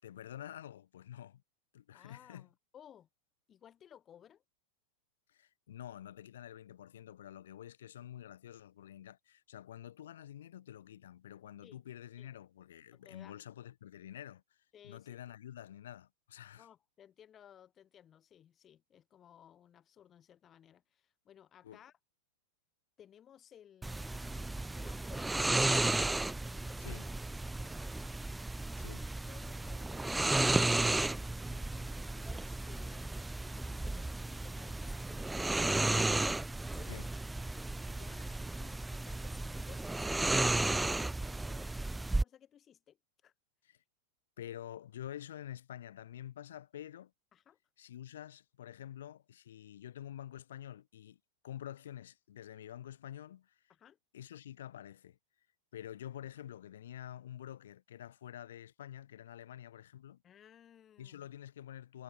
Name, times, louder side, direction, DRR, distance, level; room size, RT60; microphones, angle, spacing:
voice 1, 0.0-1.4 1.7-2.5 5.3-14.4 14.8-16.7 21.6-21.8 26.8-27.1 28.8-29.0 36.9-37.1 43.6-43.8 44.4-47.1 47.8-51.2 51.4-53.6 54.1-55.2 55.7-60.2 61.0-62.0, left 11 dB, 60° left, 3.9 m, -48 dB
voice 2, 1.9-3.1 3.5-4.4 11.6-11.8 12.2-12.3 12.9-13.4 14.7-15.2 16.6-21.9 23.0-26.0 26.4-28.0 28.5-29.0 29.3-36.1 36.7-43.0 43.2-43.3 47.3-47.6 53.7-54.0 60.2-61.2, left 9 dB, 25° left, 5.2 m, -60 dB
sound 1, 23.8-42.2, right 2 dB, 5° right, 0.3 m, -34 dB
figure-of-eight pair, 90°, 0 cm